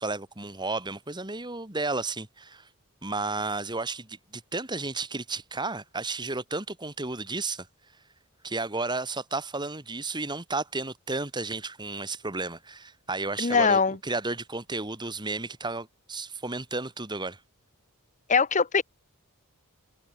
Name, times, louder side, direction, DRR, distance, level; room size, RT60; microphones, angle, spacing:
voice 1, 0.0-2.7 3.0-7.7 8.4-17.4, right 3 dB, 20° right, 2.7 m, -33 dB
voice 2, 13.4-14.0 18.3-18.8, left 5 dB, 35° left, 1.0 m, -22 dB
head